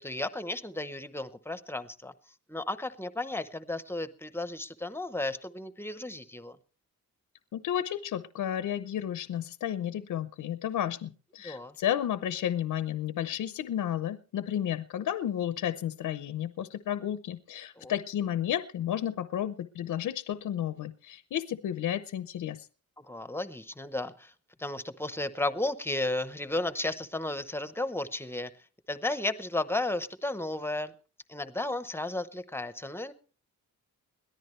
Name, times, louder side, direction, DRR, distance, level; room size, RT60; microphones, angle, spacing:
voice 1, 0.0-2.1 2.5-6.6 11.4-11.8 17.8-17.9 23.0-24.3 24.6-28.5 28.9-30.9 31.3-33.1, left 2 dB, 5° left, 12 dB, 0.8 m, -34 dB
voice 2, 7.5-22.7, left 10 dB, 65° left, 12 dB, 0.8 m, -32 dB
21.5 x 14.0 x 3.2 m, 0.39 s
wide cardioid pair, 170°, 34 cm